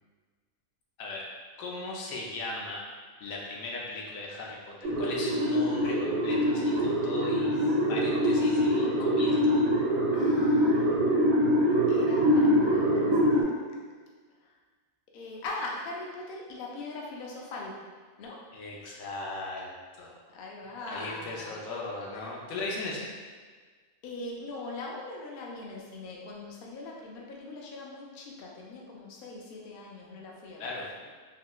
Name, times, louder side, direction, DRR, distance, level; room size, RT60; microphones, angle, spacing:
voice 1, 1.6-2.8 3.2-7.5 7.9-9.6 18.5-19.7 20.0-20.1 20.9-23.2 30.6-30.9, left 2 dB, 85° left, -3 dB, 1.0 m, -38 dB
sound 1, 4.8-13.4, equal, 85° right, 1.0 m, -24 dB
voice 2, 10.1-11.0 11.9-13.4 14.4-14.5 15.1-17.8 18.2-18.4 20.3-21.6 24.0-30.8, left 2 dB, 65° left, -2 dB, 0.5 m, -41 dB
3.6 x 2.0 x 2.3 m, 1.5 s
omnidirectional pair, 1.4 m